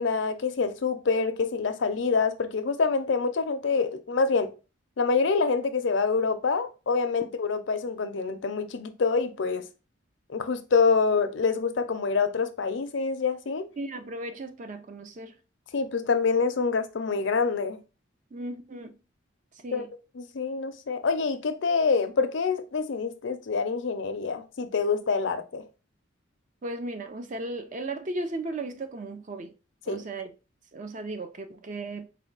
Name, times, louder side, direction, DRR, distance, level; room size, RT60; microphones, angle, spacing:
voice 1, 0.0-4.5 5.0-9.6 10.3-13.7 15.7-17.8 19.7-19.8 20.1-25.7 29.9-30.0, left 4 dB, 70° left, 0.5 m, -26 dB
voice 2, 13.8-15.3 18.3-18.9 19.6-19.9 26.6-29.5 29.9-30.3 30.7-32.1, right 2 dB, 40° right, 0.5 m, -36 dB
4.3 x 2.2 x 3.8 m
head